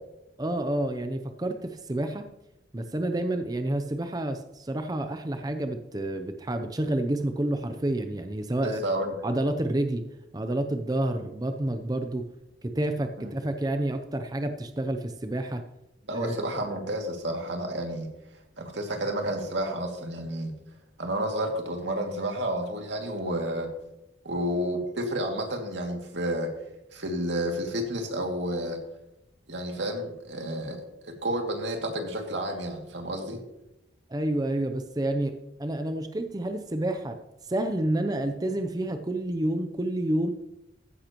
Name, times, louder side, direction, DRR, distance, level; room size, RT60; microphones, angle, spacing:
voice 1, 0.4-2.3 2.7-8.8 9.2-10.0 10.3-12.3 12.6-15.6 16.1-16.3 34.1-37.2 37.4-40.3, right 1 dB, 20° right, 7 dB, 0.6 m, -29 dB
voice 2, 8.6-9.2 16.1-18.1 18.6-20.5 21.0-23.7 24.2-26.5 26.9-28.8 29.5-33.4, right 1 dB, 85° right, 2 dB, 2.3 m, -30 dB
15.0 x 10.0 x 3.0 m, 0.89 s
head